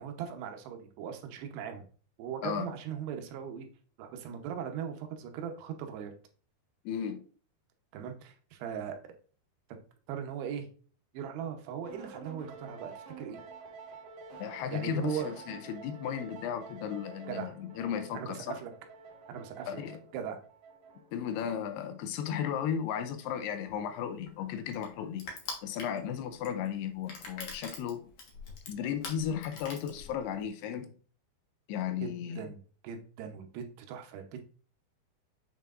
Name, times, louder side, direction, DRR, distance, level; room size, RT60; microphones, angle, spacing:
voice 1, 0.0-1.9 2.2-3.7 4.0-6.1 7.9-9.1 10.1-10.7 11.1-13.4 14.7-15.3 17.3-17.5 18.1-18.7 19.3-19.8 20.1-20.4 32.0-32.1 32.4-32.6 32.8-34.5, right 8 dB, 85° right, 3.0 m, -39 dB
voice 2, 6.9-7.2 14.4-18.6 19.7-20.0 21.1-25.3 25.6-28.1 28.7-30.9 31.7-32.4, left 8 dB, 85° left, 2.7 m, -35 dB
sound 1, 11.9-21.3, right 4 dB, 60° right, 2.1 m, -49 dB
Crushing, 23.7-30.5, left 3 dB, 65° left, 1.5 m, -45 dB
7.3 x 5.7 x 2.4 m
omnidirectional pair, 4.7 m